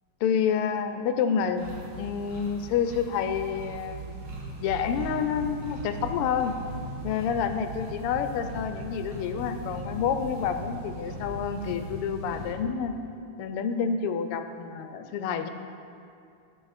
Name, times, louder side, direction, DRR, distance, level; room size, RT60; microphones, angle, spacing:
voice 1, 0.2-1.6 2.0-4.2 4.6-6.6 7.0-13.0 13.4-15.5, left 7 dB, 85° left, 8 dB, 1.6 m, -28 dB
sound 1, 1.6-12.5, right 1 dB, 60° right, 2.2 m, -39 dB
13.0 x 6.0 x 4.1 m, 2.5 s
omnidirectional pair, 2.4 m